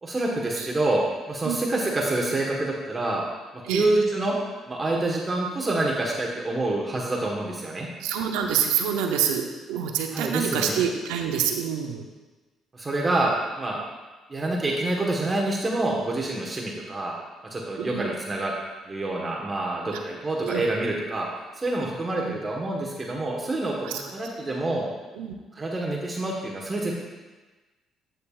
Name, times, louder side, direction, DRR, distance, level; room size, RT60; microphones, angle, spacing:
voice 1, 0.0-3.2 3.5-4.3 4.7-7.9 10.1-10.8 12.7-13.8 14.3-17.1 17.4-18.5 18.8-21.3 21.6-24.9 25.6-27.0, right 2 dB, 30° right, -2 dB, 1.4 m, -27 dB
voice 2, 8.0-12.1 17.8-18.1 19.9-20.0 20.4-20.6 22.2-22.4 23.8-24.0 25.2-25.3, right 8 dB, 85° right, 3 dB, 0.7 m, -27 dB
9.8 x 6.6 x 2.4 m, 1.2 s
supercardioid pair, 60°, 0 cm